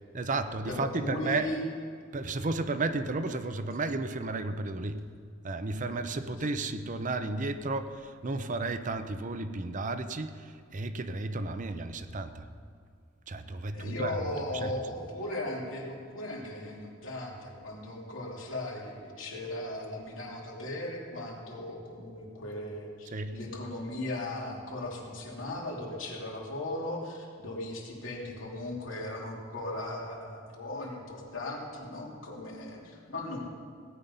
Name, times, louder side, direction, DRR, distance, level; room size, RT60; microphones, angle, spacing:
voice 1, 0.1-1.5 2.1-5.0 5.4-12.5 13.3-14.2 14.5-14.7 23.1-23.4, right 2 dB, 40° right, 9 dB, 0.7 m, -33 dB
voice 2, 0.7-1.6 13.7-33.4, left 1 dB, 80° left, -2 dB, 2.9 m, -37 dB
17.5 x 9.6 x 5.5 m, 2.3 s
head